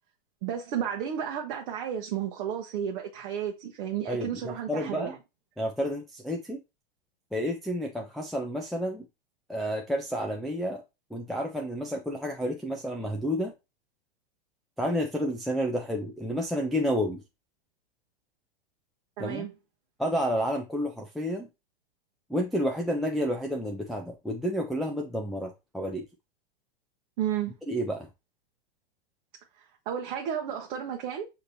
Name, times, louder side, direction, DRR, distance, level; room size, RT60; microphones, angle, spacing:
voice 1, 0.4-5.2 19.2-19.5 27.2-27.5 29.6-31.3, right 9 dB, 50° right, 0.9 m, -32 dB
voice 2, 4.1-5.1 5.6-6.6 7.3-9.1 9.5-10.8 11.1-13.5 14.8-17.2 19.2-19.4 20.0-21.5 22.3-26.0 27.7-28.1, equal, ahead, 0.5 m, -30 dB
6.5 x 2.9 x 2.6 m
hypercardioid pair, 105°, 30 cm